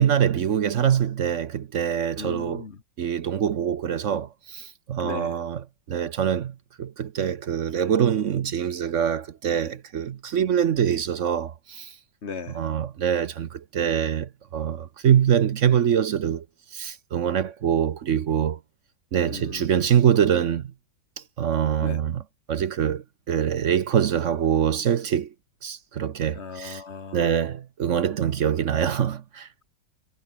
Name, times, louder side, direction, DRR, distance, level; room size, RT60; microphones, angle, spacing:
voice 1, 0.0-2.6 3.0-11.9 12.5-16.4 16.7-18.6 19.1-20.7 21.4-22.2 22.5-25.3 25.6-26.8 27.1-29.5, right 9 dB, 55° right, 1.0 m, -24 dB
voice 2, 2.2-2.8 5.0-5.4 12.2-12.6 19.3-19.7 21.8-22.0 26.3-27.3, left 5 dB, 40° left, 1.7 m, -37 dB
omnidirectional pair, 1.9 m